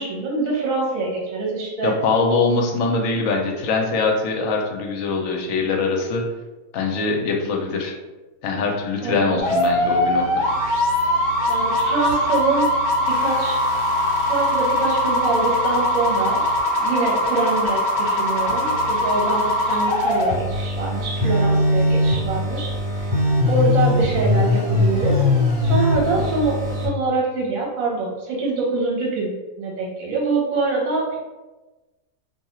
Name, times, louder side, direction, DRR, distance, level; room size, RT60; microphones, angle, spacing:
voice 1, 0.0-1.9 9.0-9.4 11.5-12.7 13.1-13.6 14.2-16.4 16.8-23.1 23.5-25.2 25.6-31.2, right 3 dB, 70° right, -3 dB, 1.2 m, -24 dB
voice 2, 1.8-6.2 6.7-8.0 8.4-10.4, left 4 dB, 70° left, 1 dB, 0.9 m, -22 dB
sound 1, 9.4-26.9, left 1 dB, 50° right, 1.3 m, -21 dB
2.6 x 2.3 x 3.0 m, 1.1 s
omnidirectional pair, 1.5 m